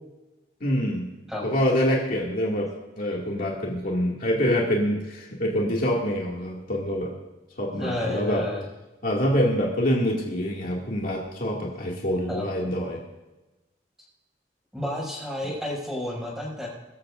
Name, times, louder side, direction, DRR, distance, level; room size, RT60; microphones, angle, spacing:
voice 1, 0.6-1.1 1.4-2.7 3.0-7.1 7.6-8.4 9.0-13.0, equal, 55° left, -2 dB, 2.3 m, -25 dB
voice 2, 7.8-8.6 12.3-12.5 14.7-16.7, left 1 dB, ahead, -5 dB, 6.0 m, -31 dB
23.0 x 14.0 x 2.6 m, 1.1 s
head